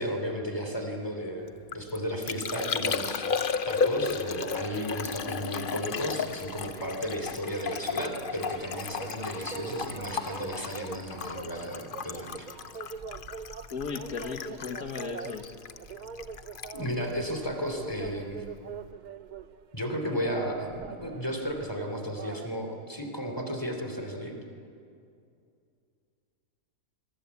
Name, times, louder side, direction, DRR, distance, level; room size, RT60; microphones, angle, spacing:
voice 1, 0.0-12.5 16.7-18.4 19.7-24.3, equal, 15° left, 3 dB, 3.2 m, -34 dB
Liquid, 1.5-18.1 18.4-18.9, left 6 dB, 45° left, 0.7 m, -35 dB
sound 1, 3.9-22.5, right 6 dB, 60° right, 0.4 m, -43 dB
voice 2, 13.7-15.5, left 5 dB, 70° left, 4 dB, 1.8 m, -36 dB
25.0 x 23.0 x 8.4 m, 2.5 s
omnidirectional pair, 1.6 m